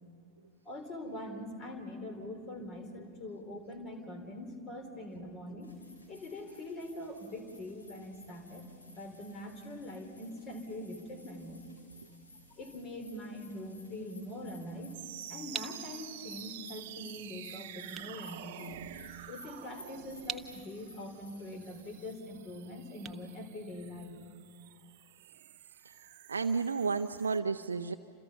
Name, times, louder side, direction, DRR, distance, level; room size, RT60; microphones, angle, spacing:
voice 1, 0.6-5.8 6.1-11.6 12.6-15.0 15.3-18.8 19.3-24.2, left 1 dB, 30° left, 6 dB, 4.0 m, -43 dB
sound 1, 5.6-22.1, left 1 dB, 75° left, 5.3 m, -57 dB
sound 2, 14.9-27.4, right 12 dB, 50° right, 1.0 m, -49 dB
sound 3, 15.5-24.3, right 6 dB, 20° right, 1.0 m, -48 dB
voice 2, 25.6-27.9, right 5 dB, 75° right, 5 dB, 0.6 m, -33 dB
30.0 x 27.5 x 5.7 m, 2.2 s
figure-of-eight pair, 90°, 0 cm